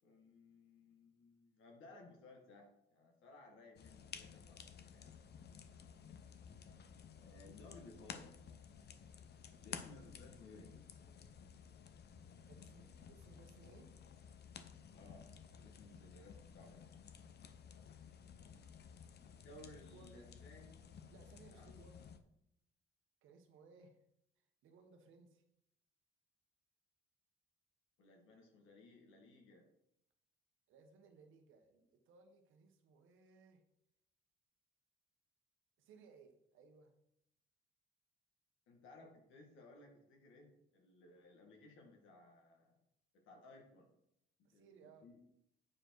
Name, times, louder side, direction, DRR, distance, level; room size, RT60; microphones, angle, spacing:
voice 1, 0.0-5.1 7.1-8.3 9.6-10.8 14.9-15.3 15.5-16.8 19.3-20.8 21.5-21.7 28.0-29.7 38.7-42.8 43.1-43.9 44.4-45.2, left 2 dB, 80° left, 1 dB, 1.8 m, -60 dB
sound 1, 3.8-22.2, left 7 dB, 55° left, 0.8 m, -55 dB
voice 2, 12.5-13.9 19.5-20.2 21.1-22.1 23.2-24.0 24.4-25.4 30.7-33.6 35.8-36.9 44.4-45.1, right 4 dB, 85° right, 5 dB, 1.2 m, -63 dB
8.7 x 4.6 x 4.7 m, 0.77 s
cardioid pair, 90°, 20 cm